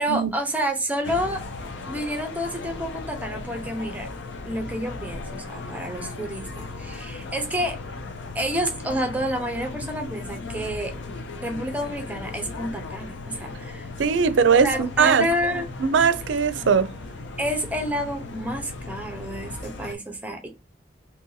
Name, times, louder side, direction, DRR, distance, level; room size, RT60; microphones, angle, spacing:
voice 1, 0.0-1.4 1.8-4.1 4.4-7.8 8.3-10.9 11.4-13.9 14.6-15.6 17.4-20.5, equal, 10° right, 0.6 m, -29 dB
sound 1, 1.0-19.9, left 3 dB, 75° left, 0.6 m, -37 dB
voice 2, 14.0-15.3 15.8-16.9, right 6 dB, 80° right, 0.4 m, -20 dB
2.8 x 2.6 x 3.9 m
head